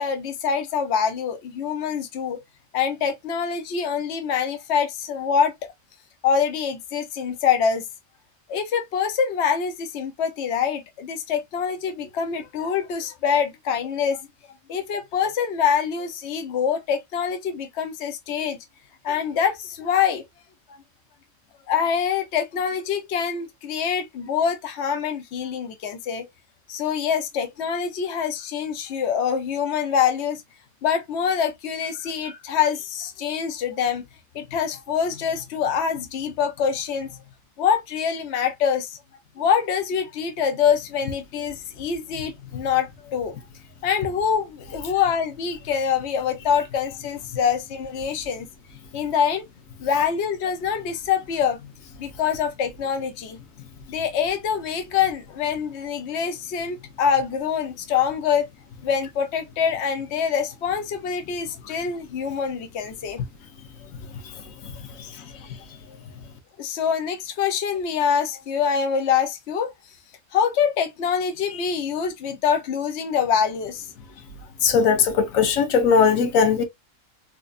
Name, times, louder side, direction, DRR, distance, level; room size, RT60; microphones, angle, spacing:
voice 1, 0.0-2.4 2.7-5.5 6.2-7.8 8.5-14.2 14.7-18.6 19.0-20.2 21.7-26.3 26.7-30.4 30.8-34.0 34.3-37.2 37.6-39.0 39.4-43.4 43.8-48.5 48.9-49.4 49.8-51.7 52.0-53.4 53.9-58.5 58.8-63.2 65.9-66.0 66.6-69.7 70.3-73.9, left 7 dB, 60° left, 1.0 m, -25 dB
voice 2, 74.6-76.6, left 6 dB, 85° left, 1.2 m, -19 dB
4.2 x 2.6 x 2.4 m
omnidirectional pair, 1.3 m